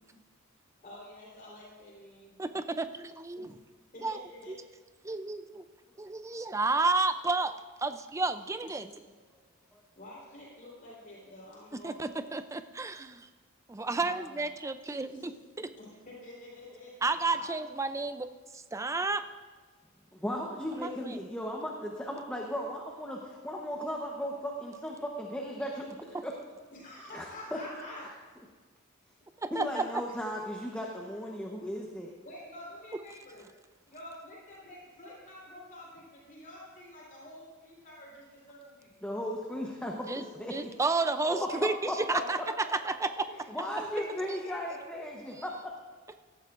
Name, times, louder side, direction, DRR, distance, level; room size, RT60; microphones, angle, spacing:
voice 1, 0.8-2.4 3.4-3.6 3.9-4.6 8.8-9.1 10.0-12.2 13.9-14.5 14.8-15.5 15.8-16.9 17.3-17.5 26.7-28.1 32.2-33.5 33.9-39.0 41.5-41.6 42.0-42.4 42.8-42.9 43.2-45.0, left 1 dB, 40° left, -5 dB, 3.9 m, -48 dB
voice 2, 2.4-3.5 4.0-4.2 4.5-4.6 5.0-5.7 6.0-7.5 7.8-8.9 11.8-13.3 13.7-15.3 15.6-15.7 17.0-18.3 18.5-19.3 20.8-21.3 29.4-29.9 40.1-40.2 40.5-42.4 42.7-43.3, right 3 dB, 15° right, 10 dB, 0.4 m, -31 dB
voice 3, 20.1-25.9 26.2-26.3 27.1-27.6 29.5-32.1 39.0-40.7 41.2-42.0 43.5-45.7, equal, 5° left, -1 dB, 0.9 m, -36 dB
17.0 x 14.0 x 2.5 m, 1.4 s
head